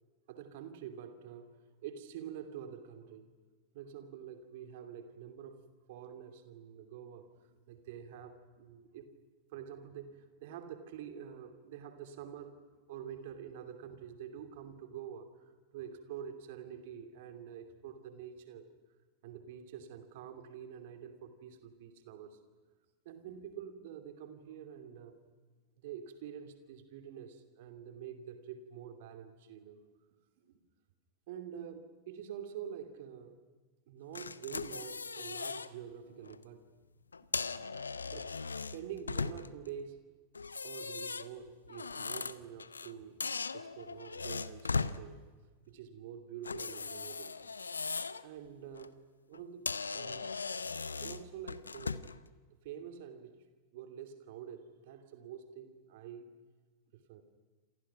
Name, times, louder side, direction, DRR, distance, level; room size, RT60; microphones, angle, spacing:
voice 1, 0.3-1.6 1.8-3.3 3.7-9.1 9.5-12.6 12.9-18.7 19.2-22.4 23.0-25.2 25.8-29.8 30.4-30.5 31.3-33.4 33.9-36.7 38.1-40.0 40.6-43.2 43.5-45.2 45.7-47.4 48.2-49.0 49.3-50.5 51.0-52.1 52.5-53.4 53.7-56.3 56.9-57.2, right 8 dB, 50° right, 8 dB, 2.8 m, -47 dB
sound 1, 34.2-35.7 36.1-36.4 37.1-39.7 40.4-42.9 43.2-45.0 46.4-48.2 48.6-48.9 49.3-49.4 49.7-52.2, left 4 dB, 75° left, 0.8 m, -38 dB
28.0 x 27.5 x 6.0 m, 1.4 s
figure-of-eight pair, 90°, 0 cm